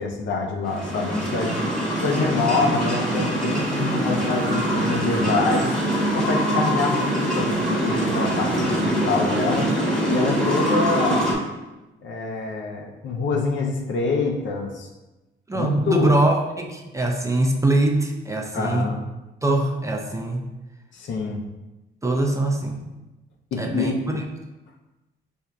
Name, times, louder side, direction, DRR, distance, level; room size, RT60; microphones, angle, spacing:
voice 1, 0.0-1.5 2.0-5.8 6.1-9.7 10.1-11.3 12.0-14.9 15.5-16.1 18.5-19.0 20.9-21.4 23.5-23.9, left 4 dB, 70° left, 2 dB, 0.7 m, -26 dB
sound 1, 0.6-11.3, right 1 dB, 5° left, 0.9 m, -23 dB
voice 2, 15.5-18.9 19.4-20.4 22.0-22.8 23.6-24.2, right 2 dB, 15° right, 2 dB, 0.4 m, -22 dB
4.6 x 2.6 x 2.3 m, 1.1 s
cardioid pair, 90°, 20 cm